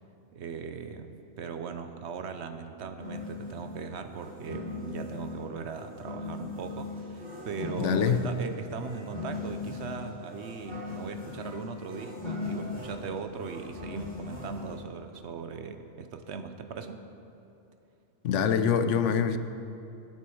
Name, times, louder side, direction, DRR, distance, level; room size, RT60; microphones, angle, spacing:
voice 1, 0.3-17.1, right 5 dB, 65° right, 8 dB, 1.0 m, -39 dB
sound 1, 3.0-14.8, left 3 dB, 50° right, 3.7 m, -39 dB
voice 2, 7.8-8.3 18.2-19.4, left 7 dB, 80° left, 10 dB, 1.0 m, -25 dB
11.5 x 8.6 x 6.3 m, 2.9 s
omnidirectional pair, 1.2 m